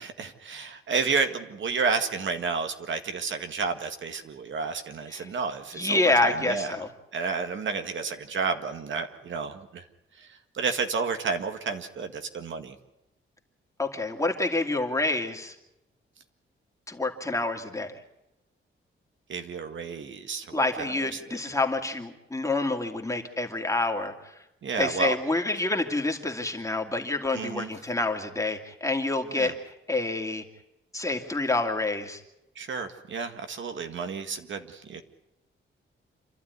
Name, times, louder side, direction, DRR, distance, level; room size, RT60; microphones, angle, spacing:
voice 1, 0.0-6.8 7.1-9.9 10.2-12.8 19.3-21.5 24.6-25.2 27.3-27.7 29.3-29.5 32.6-35.0, right 5 dB, 65° right, 7 dB, 1.9 m, -31 dB
voice 2, 5.7-6.9 13.8-15.5 16.9-17.9 20.5-24.1 24.8-29.5 29.9-30.4 30.9-32.2, left 2 dB, 15° left, 3 dB, 2.5 m, -27 dB
28.0 x 12.5 x 9.7 m, 0.92 s
cardioid pair, 110°, 21 cm